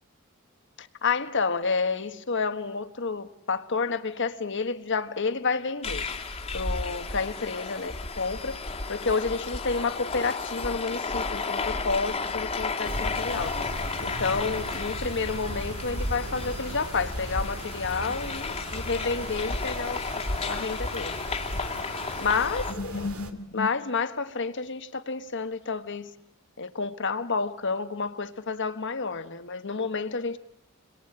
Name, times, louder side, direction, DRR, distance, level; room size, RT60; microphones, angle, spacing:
voice 1, 0.8-6.0 6.5-8.6 8.9-13.5 14.0-21.1 22.2-26.1 26.6-30.4, left 4 dB, 60° left, 10 dB, 1.4 m, -30 dB
sound 1, 5.8-22.7, left 3 dB, 30° left, 1.8 m, -33 dB
sound 2, 12.8-23.3, right 2 dB, 90° right, 2.4 m, -39 dB
28.5 x 22.0 x 8.9 m, 0.82 s
head